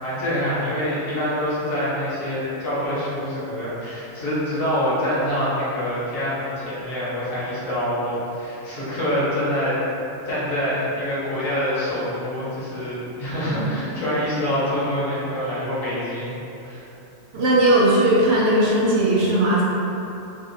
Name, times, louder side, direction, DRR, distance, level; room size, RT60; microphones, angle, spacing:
voice 1, 0.0-9.8 10.2-16.4 16.6-16.8, equal, 80° left, -9 dB, 1.4 m, -25 dB
voice 2, 17.3-19.6, right 1 dB, 65° right, -6 dB, 0.8 m, -18 dB
3.6 x 2.5 x 2.6 m, 2.9 s
omnidirectional pair, 1.4 m